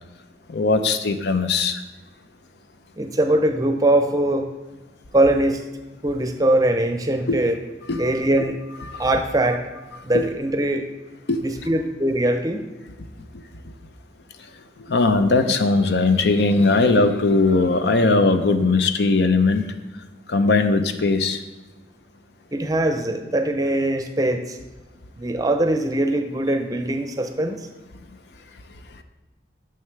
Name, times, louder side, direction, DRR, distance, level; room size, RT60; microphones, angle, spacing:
voice 1, 0.5-1.8 7.3-7.4 7.9-8.0 8.9-9.2 10.1-10.2 11.3-11.4 14.9-19.6 20.3-21.4, left 3 dB, 70° left, 9 dB, 0.6 m, -19 dB
voice 2, 3.0-4.5 5.1-5.6 6.0-7.6 8.0-8.6 9.0-9.7 10.0-10.9 11.4-12.7 22.5-24.6 25.2-27.7, right 1 dB, 20° right, 6 dB, 0.6 m, -21 dB
9.3 x 6.5 x 3.2 m, 1.1 s
head